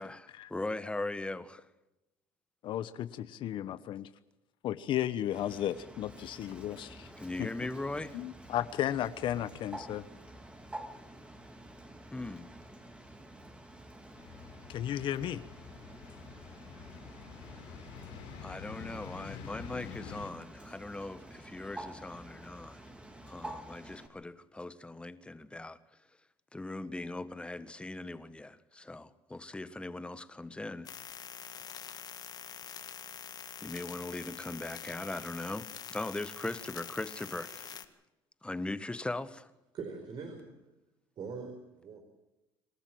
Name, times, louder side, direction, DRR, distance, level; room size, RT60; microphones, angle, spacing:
voice 1, 0.0-1.6 7.2-8.2 12.1-12.5 18.4-22.8 23.2-25.8 26.5-30.9 33.6-37.7 38.4-39.5, left 2 dB, 10° left, 1.5 m, -39 dB
voice 2, 2.6-4.1 4.6-7.1 7.4-7.5 8.1-10.0 14.7-15.4, left 11 dB, 60° left, 1.1 m, -34 dB
Bird, 5.3-24.1, right 1 dB, 10° right, 3.2 m, -49 dB
sound 1, 14.2-20.3, left 7 dB, 80° left, 3.9 m, -48 dB
sound 2, 30.8-37.8, left 8 dB, 45° left, 1.7 m, -45 dB
voice 3, 39.7-40.7 41.2-42.0, right 5 dB, 50° right, 4.4 m, -43 dB
27.5 x 13.5 x 7.7 m
cardioid pair, 100°, 10 cm